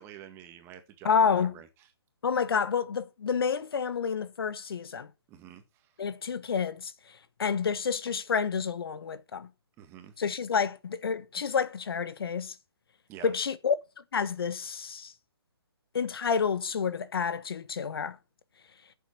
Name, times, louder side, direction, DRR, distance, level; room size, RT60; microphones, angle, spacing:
voice 1, 0.0-1.9 5.3-5.9 9.8-10.1 13.1-13.3, right 9 dB, 15° right, 1.7 m, -48 dB
voice 2, 1.0-1.5 2.2-5.1 6.0-6.9 7.4-9.5 10.2-12.5 13.2-13.7 14.1-15.1 15.9-18.2, left 6 dB, 60° left, 1.2 m, -29 dB
14.0 x 7.4 x 4.5 m
hypercardioid pair, 150°, 14 cm